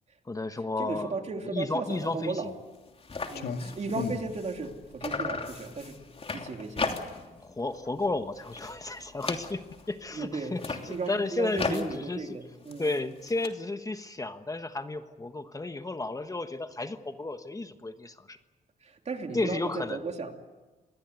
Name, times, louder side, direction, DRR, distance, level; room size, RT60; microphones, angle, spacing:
voice 1, 0.3-1.1 1.4-2.5 7.1-9.6 9.9-10.8 11.1-12.2 12.8-18.4 19.3-20.0, left 2 dB, 20° left, 8 dB, 1.3 m, -33 dB
voice 2, 0.8-2.5 3.3-6.0 6.3-6.8 10.1-12.9 18.8-20.3, right 4 dB, 45° right, 4 dB, 3.1 m, -35 dB
sound 1, 1.9-2.1 2.4-2.5 2.7-4.7 5.0-7.4 7.7-8.1 8.4-9.9 10.4-13.5, left 4 dB, 40° left, 3.0 m, -37 dB
Clock, 3.3-10.7, left 6 dB, 85° left, 2.0 m, -42 dB
26.5 x 21.0 x 8.2 m, 1.2 s
cardioid pair, 95°, 16 cm